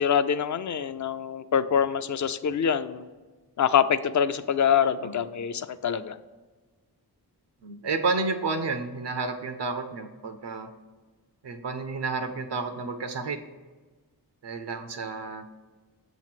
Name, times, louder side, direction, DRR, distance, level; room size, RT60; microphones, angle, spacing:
voice 1, 0.0-3.1 3.6-6.2, left 8 dB, 50° left, 13 dB, 0.4 m, -25 dB
voice 2, 7.6-10.7 11.4-13.4 14.4-15.5, right 3 dB, 85° right, 7 dB, 0.6 m, -31 dB
7.3 x 3.0 x 5.8 m, 1.4 s
cardioid pair, 45°, 40 cm